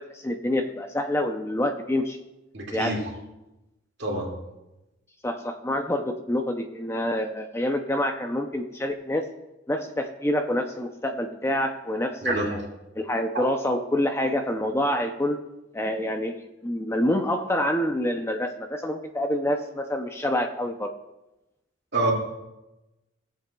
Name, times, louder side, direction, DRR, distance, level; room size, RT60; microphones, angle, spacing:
voice 1, 0.0-2.2 2.7-3.0 5.2-9.2 9.7-12.6 13.0-15.4 15.7-20.9, left 1 dB, 15° left, 5 dB, 0.5 m, -27 dB
voice 2, 2.5-3.1 4.0-4.3 12.2-12.6 13.3-13.5 21.9-22.1, right 2 dB, 55° right, -2 dB, 2.2 m, -27 dB
17.0 x 7.5 x 2.3 m, 0.97 s
head